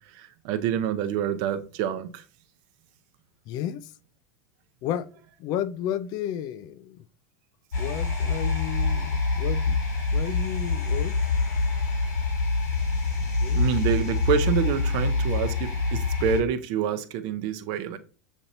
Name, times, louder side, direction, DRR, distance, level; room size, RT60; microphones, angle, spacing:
voice 1, 0.1-2.2 13.6-18.0, right 8 dB, 50° right, 0.6 m, -27 dB
voice 2, 3.5-3.9 4.8-5.1 5.4-7.1 7.8-9.8 10.1-11.1 13.4-13.8, left 10 dB, 45° left, 0.4 m, -32 dB
sound 1, 7.7-16.4, left 3 dB, 85° left, 2.5 m, -25 dB
6.9 x 2.8 x 2.6 m
hypercardioid pair, 115°, 9 cm